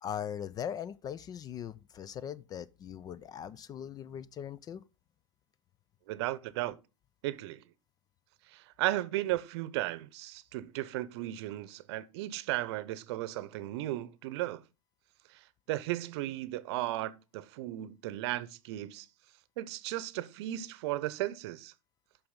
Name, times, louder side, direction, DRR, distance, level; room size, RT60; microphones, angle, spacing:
voice 1, 0.0-4.8, left 9 dB, 25° left, 0.4 m, -40 dB
voice 2, 6.1-6.8 7.2-7.6 8.5-14.6 15.3-15.4 15.7-19.1 19.6-21.7, right 15 dB, 55° right, 0.8 m, -35 dB
8.5 x 6.0 x 3.8 m
hypercardioid pair, 100°, 17 cm